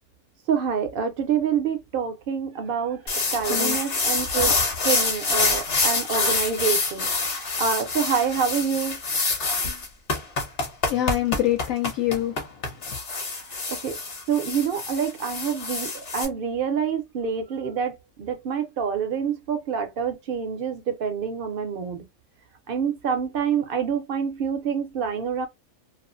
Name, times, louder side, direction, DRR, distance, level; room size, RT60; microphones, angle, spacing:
voice 1, 0.5-4.5 4.8-9.0 13.7-14.0 14.3-22.1 22.7-25.5, right 7 dB, 65° right, 0.5 m, -27 dB
sound 1, 3.1-16.2, left 3 dB, 50° left, 0.9 m, -26 dB
voice 2, 3.4-3.8 10.9-12.5 12.8-13.0, left 13 dB, 70° left, 0.9 m, -25 dB
2.5 x 2.3 x 2.4 m
omnidirectional pair, 1.5 m